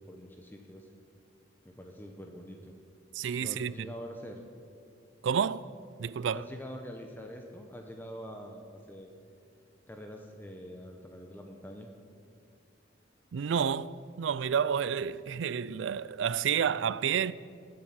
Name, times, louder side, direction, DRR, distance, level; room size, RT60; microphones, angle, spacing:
voice 1, 0.1-0.9 1.6-2.7 3.4-4.4 6.3-9.1 9.9-11.9, equal, 10° left, 0.8 m, -45 dB
voice 2, 3.1-3.9 5.2-5.6 6.0-6.4 13.3-17.3, right 7 dB, 80° right, 0.4 m, -30 dB
19.5 x 7.8 x 5.7 m
head